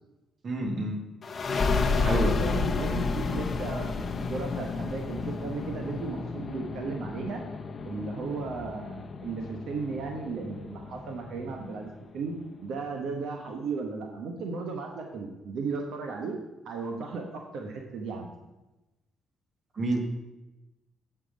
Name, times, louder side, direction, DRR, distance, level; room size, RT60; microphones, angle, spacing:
voice 1, 0.4-1.0 2.0-2.4 19.8-20.0, right 1 dB, 45° right, 4 dB, 1.5 m, -28 dB
sound 1, 1.2-12.5, left 4 dB, 40° left, 0.6 m, -32 dB
voice 2, 1.5-7.4 7.8-12.3 12.6-16.4 16.6-18.3, right 4 dB, 75° right, 2 dB, 1.0 m, -35 dB
8.1 x 5.7 x 5.1 m, 1.0 s
cardioid pair, 90°, 0 cm